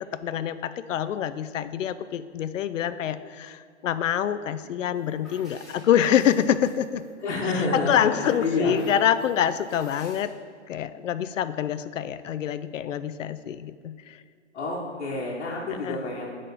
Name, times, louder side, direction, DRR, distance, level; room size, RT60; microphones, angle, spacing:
voice 1, 0.2-7.0 7.7-10.3 10.7-14.2 15.8-16.0, left 10 dB, 85° left, 13 dB, 0.5 m, -26 dB
sound 1, 4.9-7.5 7.9-10.2, equal, ahead, 1.7 m, -52 dB
voice 2, 7.2-8.7 14.5-16.3, left 2 dB, 65° left, -5 dB, 1.3 m, -28 dB
6.7 x 3.7 x 5.2 m, 2.1 s
hypercardioid pair, 145°, 37 cm